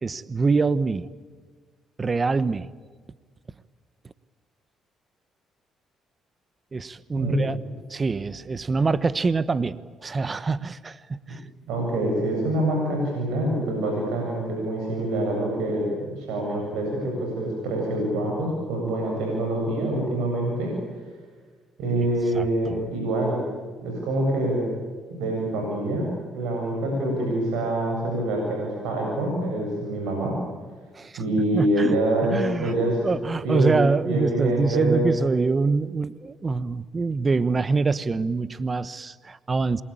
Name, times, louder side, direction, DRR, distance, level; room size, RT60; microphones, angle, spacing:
voice 1, 0.0-1.1 2.0-2.7 6.7-7.6 7.9-11.4 22.3-22.8 30.9-31.1 31.5-32.0 32.3-32.7 33.0-39.8, right 4 dB, 35° right, 16 dB, 1.1 m, -25 dB
voice 2, 7.2-7.5 11.3-11.4 11.7-15.9 16.2-20.7 21.8-23.4 23.8-24.7 25.2-30.3 31.2-33.1 33.4-33.8 34.1-35.1, right 1 dB, 85° right, 0 dB, 7.9 m, -25 dB
27.5 x 23.5 x 8.9 m, 1.5 s
supercardioid pair, 70°, 0 cm